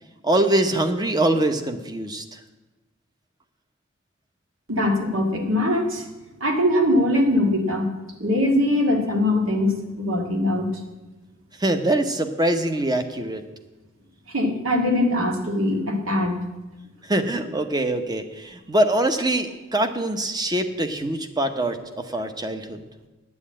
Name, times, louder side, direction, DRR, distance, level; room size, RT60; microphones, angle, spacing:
voice 1, 0.2-2.2 11.6-13.4 17.1-22.8, right 1 dB, 20° right, 7 dB, 0.9 m, -23 dB
voice 2, 4.7-6.0 6.4-7.9 8.2-10.7 14.3-16.4, left 1 dB, 75° right, 3 dB, 2.0 m, -22 dB
9.7 x 9.2 x 8.6 m, 1.1 s
head